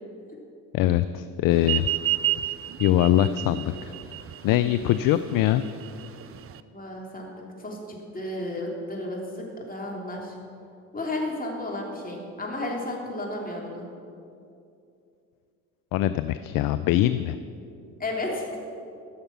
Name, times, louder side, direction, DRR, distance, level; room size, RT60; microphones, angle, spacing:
voice 1, 0.7-1.9 2.8-3.9 4.4-5.6 15.9-17.4, left 13 dB, 55° left, 12 dB, 0.5 m, -22 dB
sound 1, 1.6-6.6, right 14 dB, 35° right, 0.5 m, -30 dB
voice 2, 6.7-10.3 10.9-13.8 18.0-18.6, left 1 dB, 20° left, -1 dB, 3.0 m, -33 dB
13.5 x 6.6 x 5.9 m, 2.6 s
hypercardioid pair, 55°, 43 cm